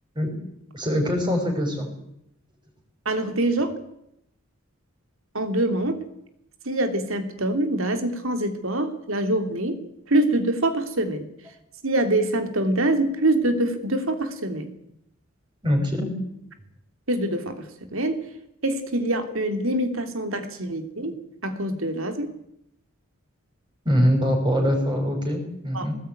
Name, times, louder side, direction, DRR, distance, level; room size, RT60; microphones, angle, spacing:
voice 1, 0.7-1.9 15.6-16.1 23.8-25.9, equal, 20° right, 2 dB, 6.0 m, -23 dB
voice 2, 3.0-3.7 5.3-6.0 6.6-9.8 10.1-11.2 11.8-14.7 17.1-18.2 18.6-21.2 21.4-22.3 25.7-25.9, right 1 dB, 70° right, 8 dB, 3.0 m, -25 dB
21.5 x 19.0 x 9.4 m, 0.80 s
head